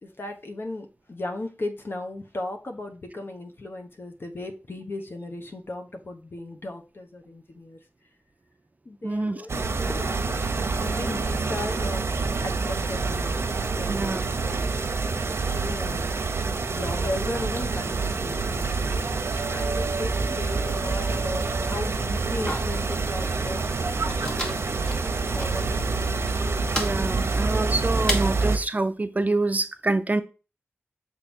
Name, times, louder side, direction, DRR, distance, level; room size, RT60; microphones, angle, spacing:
voice 1, 0.0-7.8 8.8-10.4 10.8-12.1 12.4-13.4 13.8-14.7 15.2-18.7 19.5-24.6 25.3-26.3, left 2 dB, 55° left, 1.3 m, -36 dB
voice 2, 9.0-9.5 13.9-14.3 26.7-30.2, right 2 dB, 35° right, 0.6 m, -26 dB
sound 1, 9.5-28.6, right 4 dB, 70° right, 0.9 m, -27 dB
sound 2, 22.4-28.6, equal, 20° left, 1.7 m, -35 dB
6.7 x 3.8 x 4.5 m
wide cardioid pair, 80°, 5 cm